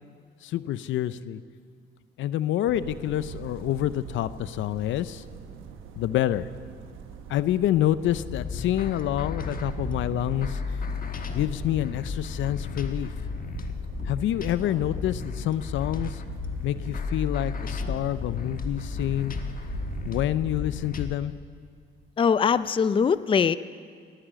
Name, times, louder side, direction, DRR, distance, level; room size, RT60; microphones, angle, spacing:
voice 1, 0.4-1.4 2.2-5.2 6.0-6.5 7.3-10.6 11.3-13.1 14.0-16.2 16.6-19.3 20.1-21.3, left 12 dB, 75° left, 15 dB, 0.5 m, -27 dB
sound 1, 2.7-20.2, right 7 dB, 90° right, 1.1 m, -41 dB
sound 2, 8.1-21.1, left 5 dB, 45° left, 1.2 m, -34 dB
voice 2, 22.2-23.6, left 6 dB, 25° left, 15 dB, 0.4 m, -22 dB
18.0 x 10.0 x 7.5 m, 2.1 s
cardioid pair, 90°, 20 cm